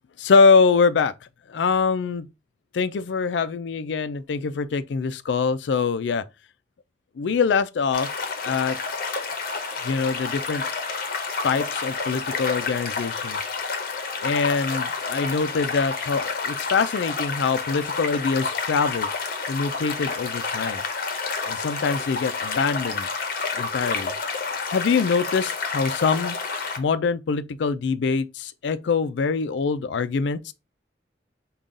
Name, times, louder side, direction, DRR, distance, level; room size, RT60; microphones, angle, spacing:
voice 1, 0.2-1.1 1.5-2.3 2.7-6.2 7.2-8.1 8.4-8.8 9.8-10.6 11.4-13.4 14.2-19.1 19.5-20.8 21.5-23.1 23.6-24.1 24.7-26.4 26.8-30.5, left 5 dB, 75° left, 0.4 m, -23 dB
sound 1, 7.9-26.8, left 4 dB, 50° left, 0.8 m, -29 dB
5.3 x 2.4 x 3.7 m
head